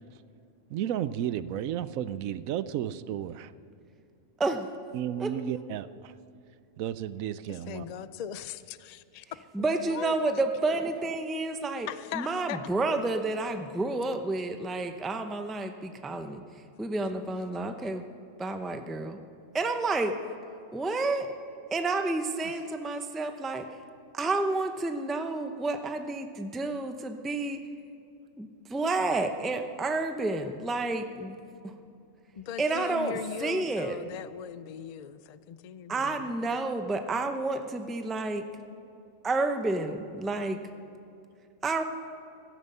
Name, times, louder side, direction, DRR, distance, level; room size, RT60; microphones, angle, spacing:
voice 1, 0.7-3.5 4.9-6.1 6.8-7.9, right 10 dB, 90° right, 15 dB, 1.0 m, -33 dB
voice 2, 4.4-4.7 5.2-5.3 9.5-11.9 12.1-16.4 16.8-18.0 18.4-19.2 19.5-20.2 20.7-21.3 21.7-23.8 24.1-27.6 28.4-31.4 31.6-31.7 32.6-34.0 35.9-38.4 39.2-40.6 41.6-41.8, right 2 dB, ahead, 6 dB, 0.5 m, -30 dB
voice 3, 7.4-9.2 9.6-10.2 11.9-12.6 22.4-22.7 32.4-36.6, left 9 dB, 85° left, 14 dB, 0.3 m, -40 dB
16.0 x 13.0 x 5.5 m, 2.6 s
omnidirectional pair, 1.4 m